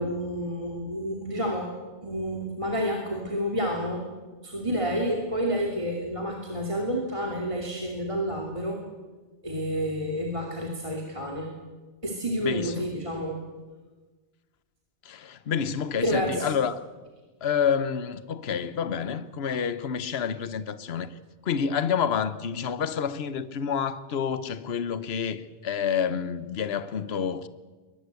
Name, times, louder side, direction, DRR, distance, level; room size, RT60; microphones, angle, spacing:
voice 1, 0.0-1.7 2.0-4.1 4.4-8.8 9.4-11.5 12.0-13.4 16.0-16.5, equal, 30° right, 2.8 m, -29 dB
voice 2, 12.4-12.9 15.0-16.8 17.4-21.1 21.4-27.5, left 7 dB, 65° left, 1.2 m, -28 dB
23.0 x 19.5 x 8.3 m
omnidirectional pair, 1.1 m